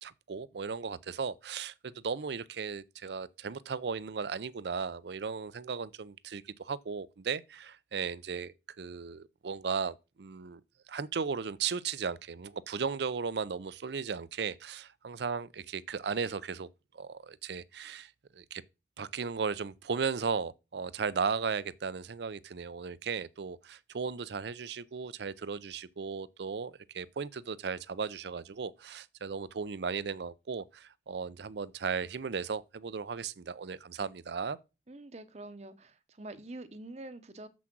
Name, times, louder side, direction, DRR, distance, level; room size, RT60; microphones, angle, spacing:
voice 1, 0.0-10.6 10.9-16.7 16.9-18.6 19.0-34.6, right 5 dB, 70° right, 0.5 m, -36 dB
voice 2, 34.9-37.5, right 2 dB, 35° right, 0.8 m, -46 dB
7.1 x 6.1 x 6.0 m
head